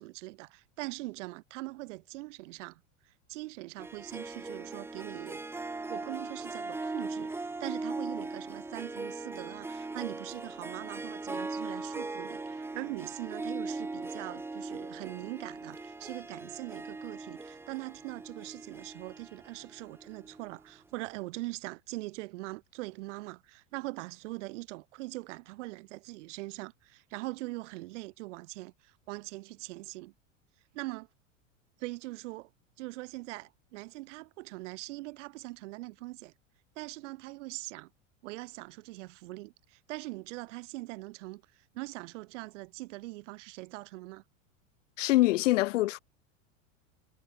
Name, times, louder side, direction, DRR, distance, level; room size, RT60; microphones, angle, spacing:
voice 1, 0.0-2.8 3.3-7.3 7.6-30.1 30.7-31.1 31.8-32.5 32.8-36.3 36.8-37.9 38.2-44.2, right 21 dB, 65° right, 3.9 m, -42 dB
Harp, 3.8-20.6, right 3 dB, 5° right, 0.7 m, -39 dB
voice 2, 45.0-46.0, left 17 dB, 70° left, 1.2 m, -24 dB
hypercardioid pair, 100°, 39 cm